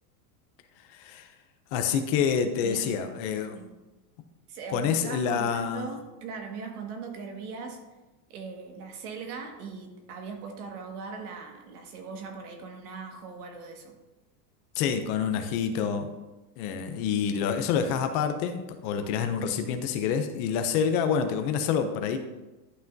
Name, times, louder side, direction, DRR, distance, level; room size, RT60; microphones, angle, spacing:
voice 1, 0.9-1.3 1.7-3.7 4.7-5.9 14.8-16.1 16.6-22.2, left 7 dB, 30° left, 7 dB, 0.4 m, -27 dB
voice 2, 2.6-3.0 3.5-3.7 4.5-7.8 8.3-13.9, right 5 dB, 70° right, 3 dB, 1.8 m, -40 dB
11.5 x 5.8 x 2.6 m, 1.1 s
supercardioid pair, 155°, 48 cm